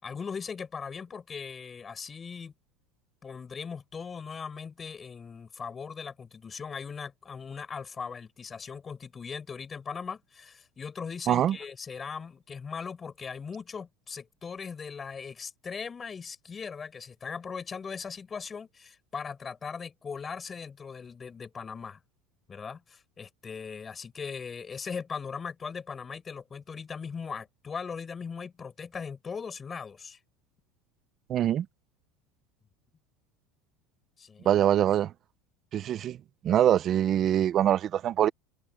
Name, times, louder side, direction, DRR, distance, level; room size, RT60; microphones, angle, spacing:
voice 1, 0.0-2.5 3.2-22.0 22.5-30.2 34.2-34.6, left 6 dB, 15° left, 6.0 m, -39 dB
voice 2, 31.3-31.7 34.4-35.1 35.7-36.2 36.4-38.3, right 11 dB, 30° right, 0.4 m, -24 dB
cardioid pair, 175°, 0 cm